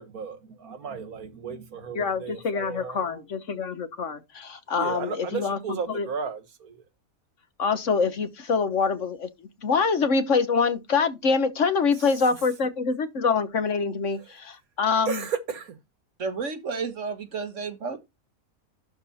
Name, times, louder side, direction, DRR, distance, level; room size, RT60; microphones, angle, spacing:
voice 1, 0.0-3.2 4.8-6.8 15.1-15.8, right 6 dB, 85° right, 1.8 m, -34 dB
voice 2, 1.9-5.6 5.9-6.1 7.6-15.2, left 5 dB, 60° left, 1.5 m, -25 dB
voice 3, 16.2-18.0, right 5 dB, 60° right, 1.7 m, -31 dB
12.0 x 4.6 x 4.2 m
omnidirectional pair, 1.5 m